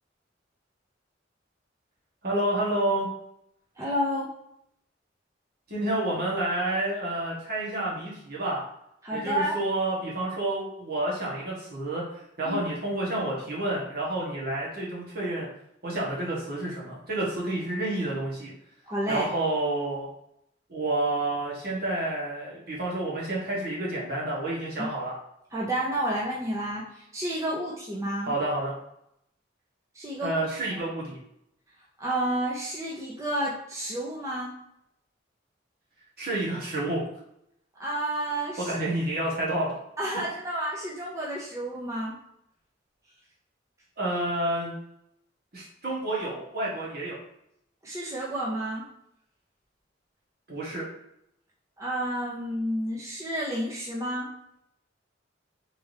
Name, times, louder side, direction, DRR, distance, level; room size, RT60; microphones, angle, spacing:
voice 1, 2.2-3.1 5.7-8.6 9.1-12.0 12.4-15.5 15.8-18.5 19.1-20.1 20.7-25.1 28.3-28.7 30.2-31.2 36.2-37.0 38.6-39.7 44.0-44.7 45.5-47.2 50.5-50.8, right 1 dB, 55° right, -5 dB, 1.4 m, -29 dB
voice 2, 3.8-4.3 9.0-9.6 12.4-12.6 18.9-19.3 24.8-24.9 25.5-28.3 29.9-30.4 30.7-30.8 32.0-34.5 37.8-38.8 40.0-42.1 47.8-48.9 51.8-54.3, right 1 dB, 15° right, -5 dB, 0.6 m, -30 dB
3.5 x 3.3 x 2.7 m, 0.77 s
head